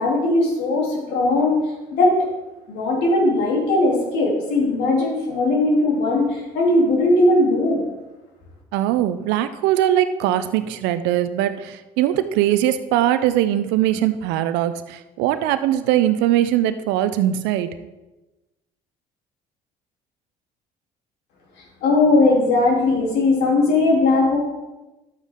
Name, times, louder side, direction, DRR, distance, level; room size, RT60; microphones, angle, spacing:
voice 1, 0.0-1.6 1.9-2.1 2.7-7.8 21.8-24.4, left 2 dB, 70° left, -2 dB, 3.3 m, -18 dB
voice 2, 8.7-17.7, right 12 dB, 75° right, 12 dB, 0.7 m, -21 dB
11.5 x 8.2 x 3.7 m, 1.1 s
hypercardioid pair, 65°, 18 cm